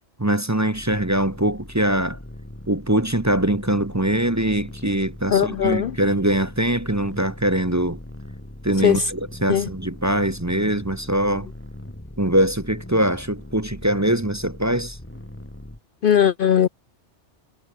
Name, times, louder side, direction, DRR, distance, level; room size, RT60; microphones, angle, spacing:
voice 1, 0.2-2.2 2.7-8.0 8.6-11.5 12.2-15.0, right 1 dB, 15° right, 1.1 m, -22 dB
sound 1, 0.7-15.8, left 1 dB, 10° left, 2.3 m, -40 dB
voice 2, 5.3-5.9 8.8-9.1 9.5-9.7 16.0-16.7, left 8 dB, 55° left, 0.7 m, -19 dB
omnidirectional pair, 1.2 m